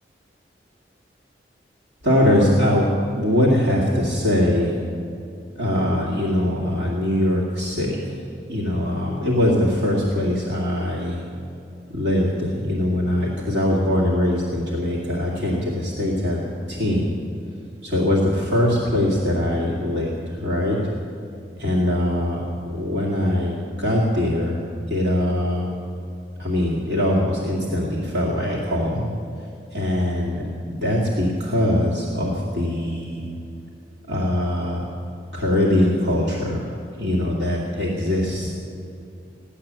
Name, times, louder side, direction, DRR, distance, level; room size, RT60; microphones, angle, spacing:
voice 1, 2.0-4.8 5.5-8.2 8.5-11.2 11.9-17.2 17.8-20.8 21.6-24.6 24.9-25.7 26.4-29.1 29.7-30.4 30.7-33.3 34.1-34.8 35.3-38.6, left 1 dB, 75° right, -4 dB, 2.4 m, -22 dB
16.5 x 11.5 x 7.6 m, 2.7 s
head